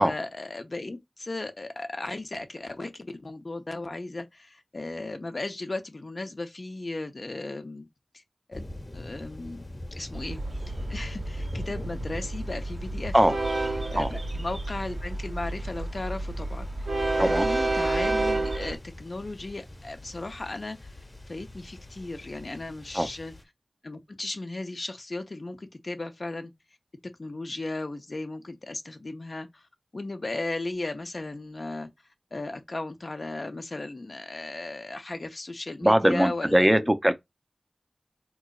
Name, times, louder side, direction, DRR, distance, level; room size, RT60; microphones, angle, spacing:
voice 1, 0.0-7.9 8.1-8.2 8.5-9.7 9.9-13.2 13.9-23.3 23.8-26.5 27.2-29.6 29.9-31.9 32.3-36.9, left 2 dB, 60° left, 0.6 m, -36 dB
sound 1, 8.5-23.4, left 1 dB, 35° left, 1.0 m, -42 dB
Train, 10.1-18.8, right 2 dB, 80° right, 1.0 m, -30 dB
voice 2, 35.8-37.1, right 1 dB, 15° right, 0.5 m, -21 dB
3.8 x 3.0 x 2.3 m
wide cardioid pair, 50°, 0 cm